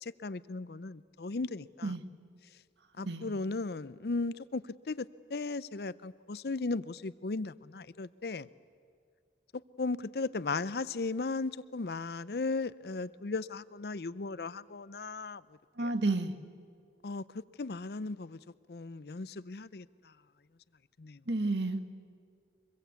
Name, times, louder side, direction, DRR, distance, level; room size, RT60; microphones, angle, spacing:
voice 1, 0.0-1.9 3.0-8.5 9.8-15.4 15.8-15.9 17.0-18.4 18.7-19.9 21.0-21.2, left 3 dB, 65° left, 0.6 m, -36 dB
voice 2, 3.0-3.3 15.8-16.3 21.3-21.9, right 2 dB, 85° right, 1.5 m, -31 dB
24.5 x 22.0 x 8.3 m
head